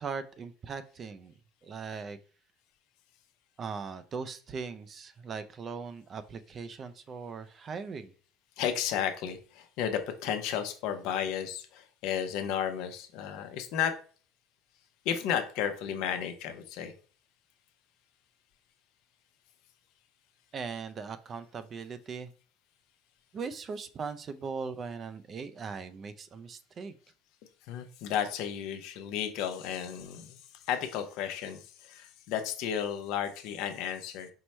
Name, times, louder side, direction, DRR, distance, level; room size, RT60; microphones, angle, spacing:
voice 1, 0.0-1.3 1.6-2.2 3.6-8.1 20.5-22.3 23.3-26.9, right 5 dB, 30° right, 11 dB, 0.3 m, -39 dB
voice 2, 8.6-14.0 15.0-16.9 27.7-30.4 30.7-34.3, left 9 dB, 65° left, 7 dB, 0.6 m, -33 dB
4.5 x 2.1 x 4.1 m, 0.41 s
cardioid pair, 135°, 0 cm